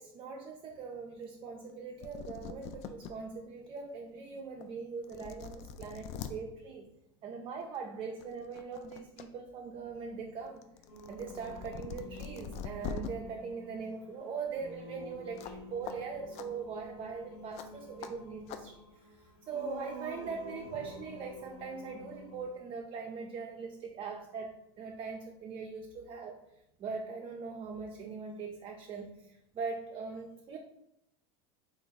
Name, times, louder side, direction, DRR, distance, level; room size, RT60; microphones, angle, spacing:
voice 1, 0.0-6.9 7.2-10.7 11.1-18.8 19.1-26.4 26.8-30.6, right 5 dB, 35° right, 2 dB, 0.4 m, -41 dB
sound 1, 1.7-1.8 2.0-3.1 3.7-3.8 4.6-4.7 5.0-6.3 7.6-7.8 8.2-9.3 9.6-13.1 15.4-15.6 15.9-16.0 16.3-16.5 17.5-17.7 18.0-18.1 18.5-18.6, left 7 dB, 50° left, 0.4 m, -43 dB
Singing, 10.9-22.5, left 1 dB, 75° left, 1.3 m, -49 dB
3.3 x 2.4 x 3.8 m, 0.83 s
hypercardioid pair, 100°, 14 cm